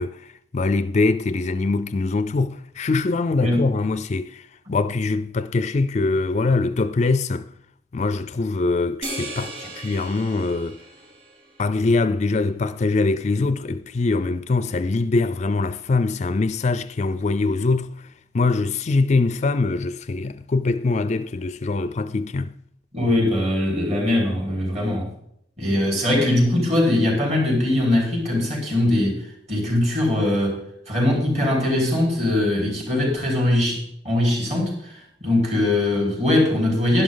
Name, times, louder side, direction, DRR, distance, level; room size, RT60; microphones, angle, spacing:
voice 1, 0.0-7.5 7.9-10.8 11.6-18.1 18.3-22.5, left 3 dB, 40° left, 0.4 m, -23 dB
sound 1, 9.0-11.7, right 2 dB, 85° right, 5.0 m, -36 dB
voice 2, 22.9-25.1 25.6-29.2 29.5-30.6 30.9-34.9 35.2-37.0, left 1 dB, 35° right, 4.4 m, -21 dB
11.5 x 11.5 x 3.9 m
head